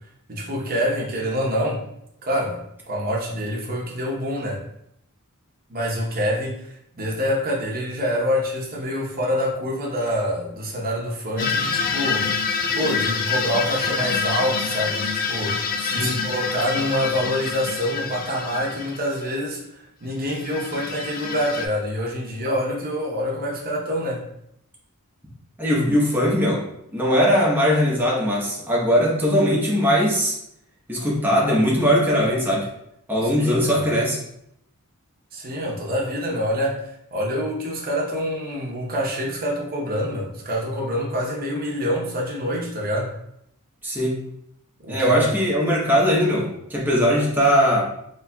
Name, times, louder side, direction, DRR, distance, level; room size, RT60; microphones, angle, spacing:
voice 1, 0.3-1.8 2.2-2.6 2.9-4.6 5.7-12.3 12.7-24.2 33.4-33.8 35.3-43.1 44.8-45.2, equal, 40° right, -2 dB, 0.8 m, -26 dB
sound 1, 11.4-19.2 20.3-21.7, left 5 dB, 40° left, 0.3 m, -26 dB
voice 2, 15.8-16.1 25.6-26.6 26.9-30.3 30.9-32.7 33.1-34.2 43.8-44.2 44.9-47.8, equal, 10° right, -5 dB, 0.9 m, -20 dB
4.2 x 3.0 x 2.2 m, 0.76 s
head